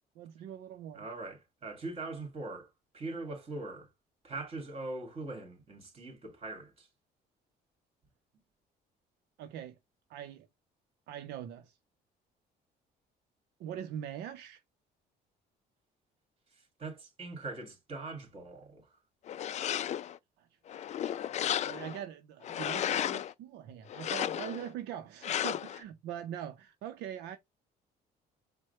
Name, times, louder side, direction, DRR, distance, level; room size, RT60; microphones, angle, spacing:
voice 1, 0.2-1.1 9.4-9.8 10.1-10.5 11.1-11.7 13.6-14.6 20.4-20.5 21.3-27.4, right 10 dB, 80° right, 0.6 m, -42 dB
voice 2, 0.9-3.9 4.2-6.9 16.8-18.9, right 2 dB, 35° right, 2.2 m, -41 dB
sound 1, 19.3-20.2 20.7-22.0 22.4-23.3 23.9-24.7 25.2-25.8, left 10 dB, 45° left, 0.4 m, -34 dB
4.7 x 2.2 x 4.2 m
cardioid pair, 110°, 17 cm